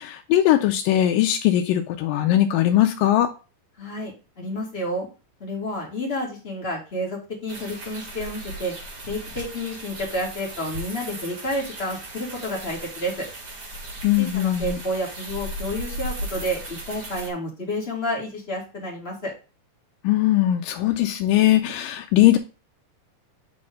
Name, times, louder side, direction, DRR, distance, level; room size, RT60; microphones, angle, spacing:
voice 1, 0.0-3.3 14.0-14.8 20.0-22.4, left 13 dB, 85° left, 2.3 m, -20 dB
voice 2, 3.8-5.1 5.4-8.7 9.0-13.3 14.2-19.3, equal, 20° left, 2.0 m, -30 dB
sound 1, 7.5-17.3, right 1 dB, 40° right, 1.3 m, -36 dB
8.5 x 4.4 x 3.6 m
omnidirectional pair, 3.9 m